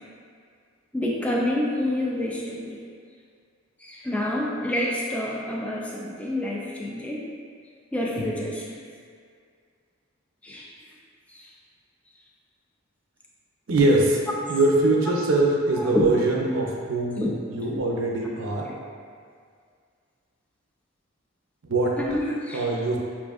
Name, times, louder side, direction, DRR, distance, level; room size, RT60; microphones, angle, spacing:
voice 1, 0.9-2.8 3.8-7.3 7.9-8.8 10.4-10.7 11.3-11.5 15.8-16.1 17.2-17.3 17.7-17.9 18.7-18.8 22.0-22.7, left 1 dB, 5° left, -4 dB, 0.3 m, -28 dB
voice 2, 13.7-14.2 14.5-17.2 17.5-18.7 21.6-22.0 22.5-23.0, right 2 dB, 80° right, -2 dB, 0.5 m, -22 dB
5.7 x 2.5 x 2.4 m, 2.1 s
head